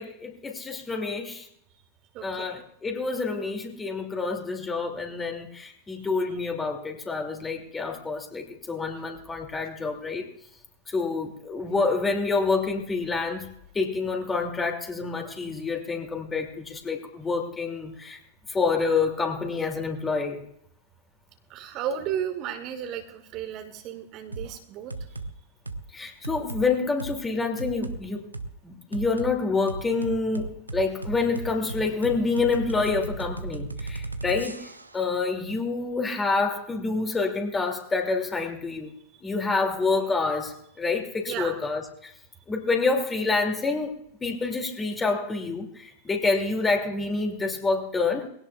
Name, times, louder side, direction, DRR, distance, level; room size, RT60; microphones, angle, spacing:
voice 1, 0.0-1.5 2.2-10.2 10.9-13.5 13.7-18.2 18.5-20.4 25.9-28.2 28.6-38.9 39.2-42.1 42.5-43.9 44.2-48.3, left 4 dB, 15° left, 3 dB, 2.4 m, -27 dB
voice 2, 2.1-2.5 6.0-6.1 21.5-24.9 39.1-39.2 41.3-41.6, right 9 dB, 40° right, 6 dB, 1.6 m, -34 dB
sound 1, 24.3-24.5 24.9-25.3 25.6-25.8 26.2-26.6 27.0-27.1 27.6-28.0 28.3-28.5 28.9-29.3 29.7-35.0, right 3 dB, 80° right, 0.9 m, -35 dB
22.0 x 17.0 x 2.3 m, 0.73 s
figure-of-eight pair, 90°, 0 cm